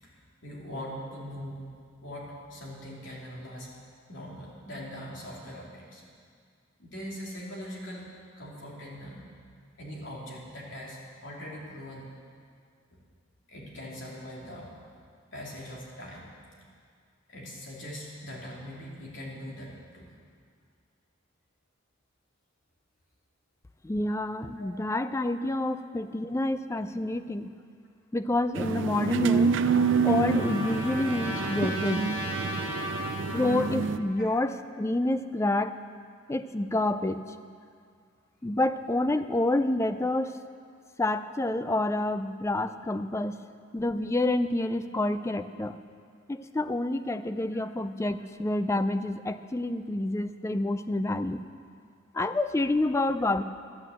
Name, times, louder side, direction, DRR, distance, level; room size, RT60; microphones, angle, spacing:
voice 1, 0.0-1.6 2.0-3.8 4.1-6.0 6.8-8.1 8.4-9.3 9.8-12.0 13.5-14.7 15.3-16.3 17.3-20.1 24.6-24.7 34.2-34.4, equal, 60° left, -4 dB, 3.0 m, -41 dB
voice 2, 23.8-27.5 28.1-29.6 30.0-32.1 33.3-35.8 36.3-37.3 38.4-40.4 41.0-43.4 43.7-45.8 46.3-51.4 52.1-53.4, left 2 dB, 15° left, 11 dB, 0.3 m, -28 dB
sound 1, 28.5-34.0, right 5 dB, 65° right, 0.4 m, -27 dB
Trumpet, 29.0-33.7, equal, 10° right, 2.6 m, -37 dB
12.5 x 8.8 x 7.7 m, 2.1 s
head